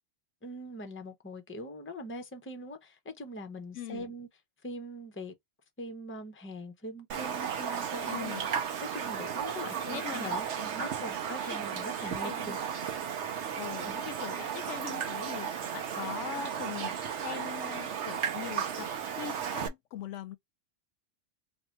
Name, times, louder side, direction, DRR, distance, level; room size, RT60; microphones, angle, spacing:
voice 1, 0.4-4.3 4.6-5.3 5.8-8.3 8.8-12.6 13.8-13.9, equal, 15° left, 0.5 m, -42 dB
voice 2, 3.7-4.1 8.1-8.5 9.9-10.7 11.4-11.6 12.0-12.6 13.6-16.9 17.2-20.4, left 11 dB, 90° left, 0.9 m, -42 dB
Raindrop, 7.1-19.7, right 8 dB, 75° right, 1.1 m, -34 dB
2.9 x 2.6 x 4.4 m
omnidirectional pair, 1.2 m